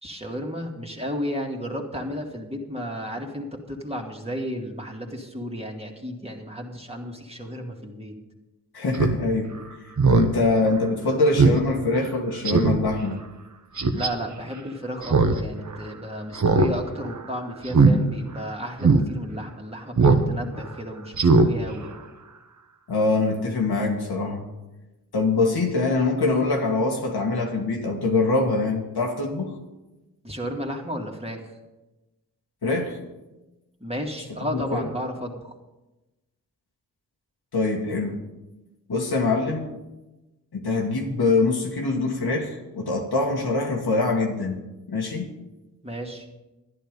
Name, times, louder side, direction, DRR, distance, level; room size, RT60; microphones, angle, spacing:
voice 1, 0.0-8.2 13.9-21.9 30.2-31.5 33.8-35.5 45.8-46.3, equal, 15° right, 0 dB, 2.3 m, -33 dB
voice 2, 8.7-9.6 10.1-13.2 22.9-24.4 25.1-29.6 32.6-33.0 34.5-34.9 37.5-38.2 38.9-39.7 40.5-44.6 44.9-45.3, left 3 dB, 70° left, 1 dB, 1.9 m, -24 dB
Speech synthesizer, 8.9-9.2 9.5-9.6 10.0-10.3 10.7-10.8 11.4-11.6 11.9-12.0 12.4-12.8 13.8-14.1 15.0-15.4 15.7-15.8 16.3-16.7 17.0-17.2 17.7-17.9 18.3-18.4 18.8-19.0 20.0-20.2 20.6-20.7 21.1-21.5 21.8-21.9, right 4 dB, 50° right, 1.2 m, -18 dB
11.5 x 10.5 x 5.3 m, 1.0 s
cardioid pair, 40°, 39 cm